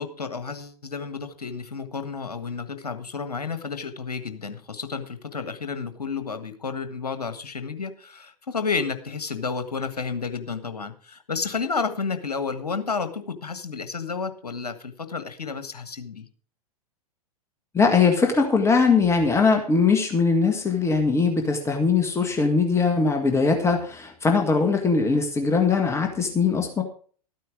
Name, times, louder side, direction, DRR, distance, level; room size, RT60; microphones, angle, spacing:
voice 1, 0.0-16.3, left 5 dB, 75° left, 9 dB, 1.6 m, -31 dB
voice 2, 17.7-26.8, left 4 dB, 15° left, 4 dB, 1.7 m, -21 dB
13.5 x 9.3 x 5.0 m, 0.43 s
figure-of-eight pair, 100°, 20 cm